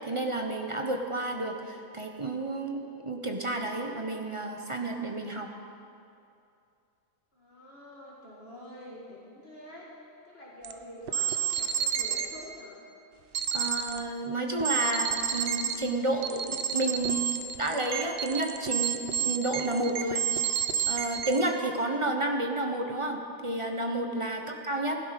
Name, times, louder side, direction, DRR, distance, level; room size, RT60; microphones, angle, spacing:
voice 1, 0.0-5.5 13.5-17.3 17.6-20.2 20.9-25.0, right 2 dB, 25° right, 3 dB, 0.9 m, -31 dB
voice 2, 7.3-9.9 10.2-12.8 24.3-24.7, equal, 45° left, -5 dB, 2.1 m, -47 dB
sound 1, 10.6-10.7 11.1-12.3 13.3-14.0 14.6-15.8 16.2-21.4, right 8 dB, 50° right, 0.7 m, -30 dB
16.0 x 11.5 x 5.2 m, 2.6 s
omnidirectional pair, 1.5 m